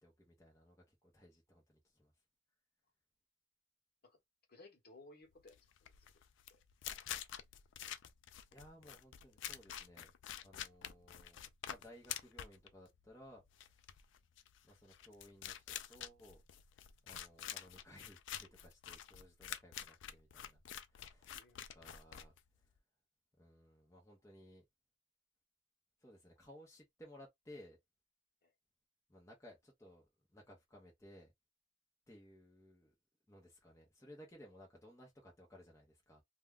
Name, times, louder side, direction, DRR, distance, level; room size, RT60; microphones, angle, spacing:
voice 1, 0.0-2.1 8.5-10.1 10.4-13.8 14.6-16.4 17.1-20.6 20.9-21.3 21.7-22.7 23.4-24.6 26.0-27.8 29.1-31.3 32.1-32.9 33.3-36.2, equal, 15° left, 0.7 m, -59 dB
voice 2, 4.5-6.1 6.5-6.6 21.3-21.6 28.4-28.5, left 2 dB, 50° left, 1.0 m, -60 dB
sound 1, 5.4-22.8, left 10 dB, 65° left, 0.4 m, -48 dB
2.3 x 2.1 x 3.5 m
head